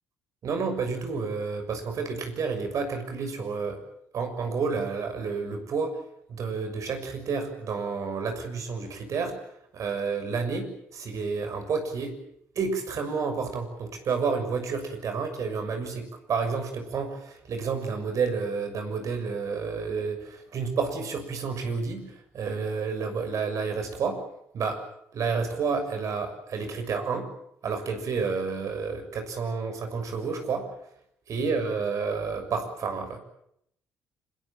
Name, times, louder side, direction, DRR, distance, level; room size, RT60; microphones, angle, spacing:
voice 1, 0.4-3.8 4.1-6.0 6.3-9.4 9.7-12.2 12.5-24.2 24.5-24.8 25.1-27.3 27.6-30.7 31.3-33.2, right 5 dB, 50° right, 7 dB, 6.7 m, -30 dB
26.0 x 22.0 x 9.1 m, 0.75 s
figure-of-eight pair, 45°, 7 cm